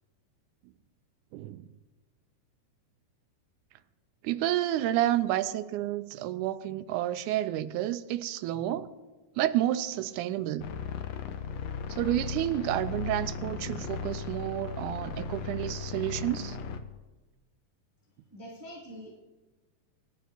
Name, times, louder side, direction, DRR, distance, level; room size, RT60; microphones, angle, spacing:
voice 1, 1.3-1.7 4.2-8.9 9.4-10.7 11.9-16.6, right 13 dB, 80° right, 1.9 m, -30 dB
sound 1, 10.6-16.8, left 5 dB, 70° left, 1.7 m, -36 dB
voice 2, 18.3-19.1, equal, 10° right, 2.0 m, -44 dB
23.5 x 11.0 x 2.8 m
omnidirectional pair, 3.9 m